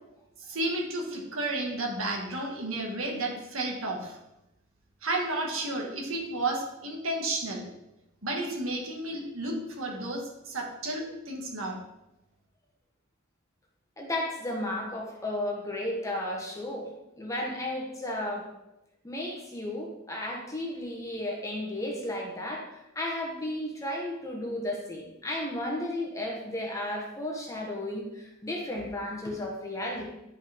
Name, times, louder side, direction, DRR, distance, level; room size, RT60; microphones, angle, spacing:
voice 1, 0.4-4.2 5.0-7.7 8.2-11.8, right 2 dB, 70° right, 0 dB, 1.8 m, -32 dB
voice 2, 14.0-16.9 17.2-18.5 19.0-30.1, left 1 dB, 15° left, 0 dB, 1.2 m, -34 dB
10.5 x 5.4 x 3.6 m, 0.93 s
head